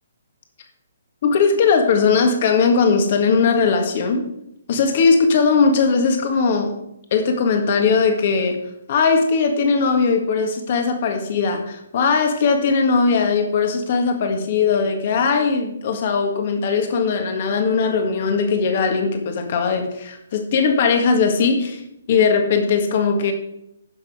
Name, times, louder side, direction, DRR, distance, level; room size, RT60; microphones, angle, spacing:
voice 1, 1.2-4.2 4.7-6.7 7.1-8.6 8.9-21.8 22.1-23.3, left 5 dB, 50° left, 5 dB, 1.7 m, -19 dB
11.0 x 6.2 x 4.8 m, 0.79 s
hypercardioid pair, 145°, 0 cm